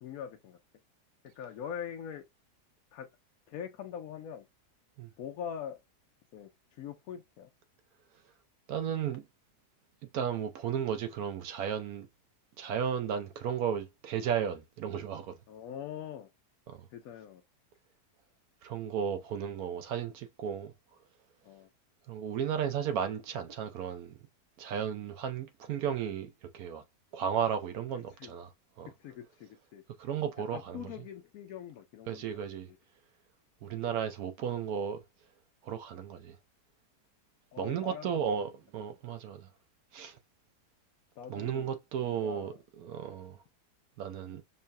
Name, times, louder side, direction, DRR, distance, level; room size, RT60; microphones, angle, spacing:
voice 1, 0.0-0.6 1.4-2.2 2.9-3.1 3.5-4.5 5.2-5.8 6.3-7.5 15.5-16.3 16.9-17.4 21.4-21.7 28.2-28.3 28.9-29.8 30.4-32.2 32.7-32.8 33.6-33.7 37.5-38.3 41.2-41.7 42.0-42.6, left 8 dB, 70° left, 1.0 m, -43 dB
voice 2, 8.7-9.2 10.1-12.1 12.6-15.3 16.7-16.8 18.6-20.7 22.1-24.2 24.6-26.8 27.1-28.5 28.8-28.9 30.0-30.8 32.1-32.7 33.6-35.0 35.6-36.3 37.6-39.5 39.9-40.2 41.3-43.4 44.0-44.4, right 8 dB, 70° right, 1.0 m, -34 dB
5.5 x 2.2 x 2.6 m
omnidirectional pair, 1.7 m